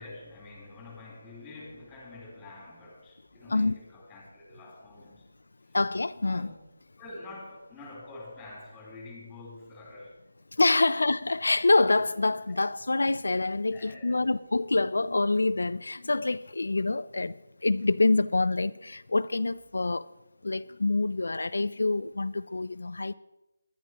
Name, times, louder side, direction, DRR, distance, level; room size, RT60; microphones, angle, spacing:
voice 1, 0.0-5.3 5.6-5.8 6.2-6.5 7.0-10.2 10.8-11.0 12.5-12.6 13.7-14.3, left 2 dB, 5° left, 3.4 m, -46 dB
voice 2, 3.5-3.8 5.7-6.5 10.6-17.3 17.6-20.1 20.4-23.1, left 3 dB, 80° left, 0.3 m, -26 dB
20.0 x 11.0 x 2.9 m
figure-of-eight pair, 170°, 0 cm